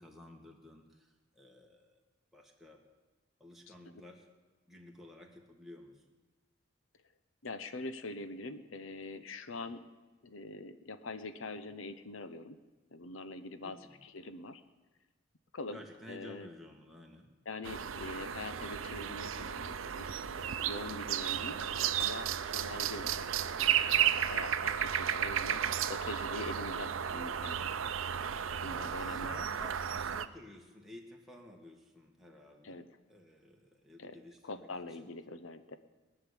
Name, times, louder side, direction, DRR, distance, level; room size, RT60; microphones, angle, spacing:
voice 1, 0.0-2.0 2.3-2.8 3.4-4.3 4.7-6.0 13.6-14.0 15.7-17.3 17.7-17.9 28.2-34.7 35.0-35.1, left 1 dB, ahead, -1 dB, 1.9 m, -53 dB
voice 2, 7.4-9.9 10.2-12.6 12.9-14.6 15.5-16.5 17.5-23.3 23.5-25.6 25.9-27.6 28.6-29.5 32.6-33.0 34.0-35.8, left 2 dB, 80° left, 11 dB, 0.8 m, -44 dB
sound 1, 17.6-30.3, right 9 dB, 85° right, 0.6 m, -33 dB
19.5 x 6.7 x 9.9 m, 1.3 s
head